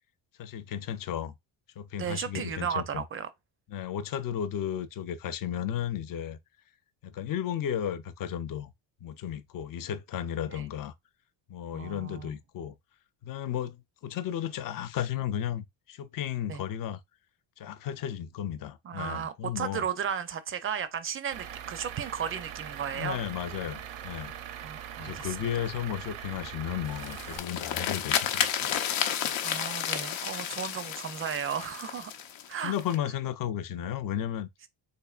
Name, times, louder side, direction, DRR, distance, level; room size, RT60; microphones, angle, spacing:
voice 1, 0.4-1.3 1.8-3.0 3.7-6.4 7.0-8.7 9.0-10.9 11.5-12.7 13.2-17.0 17.6-19.8 22.9-24.3 25.0-28.9 32.6-34.5, left 10 dB, 45° left, 0.5 m, -34 dB
voice 2, 2.0-3.3 10.5-10.7 11.7-12.3 16.5-16.6 18.8-23.2 24.6-25.5 29.4-32.1 32.5-32.7, right 8 dB, 30° right, 0.4 m, -34 dB
Truck / Idling, 21.3-27.4, right 9 dB, 80° right, 0.7 m, -41 dB
sound 1, 26.9-33.0, left 9 dB, 80° left, 0.8 m, -32 dB
3.6 x 3.4 x 2.3 m
cardioid pair, 140°, 47 cm